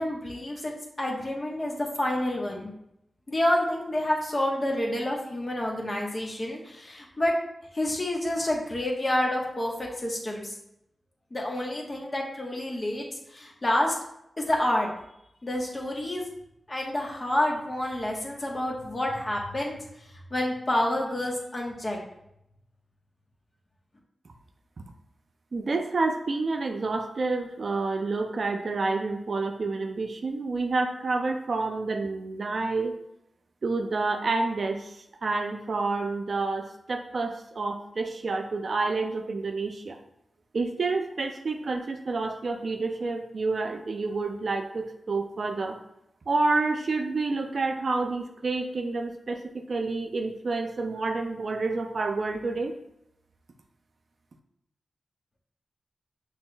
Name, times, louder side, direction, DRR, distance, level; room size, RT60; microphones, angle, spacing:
voice 1, 0.0-2.7 3.3-7.4 7.7-10.6 11.3-14.0 14.4-14.9 15.4-16.2 16.7-22.0, left 1 dB, 40° left, -1 dB, 1.2 m, -28 dB
voice 2, 25.5-32.9 33.6-40.0 40.5-45.8 46.3-49.4 49.7-52.7, right 3 dB, 65° right, 4 dB, 0.5 m, -29 dB
6.3 x 3.3 x 2.3 m, 0.80 s
cardioid pair, 60°, 0 cm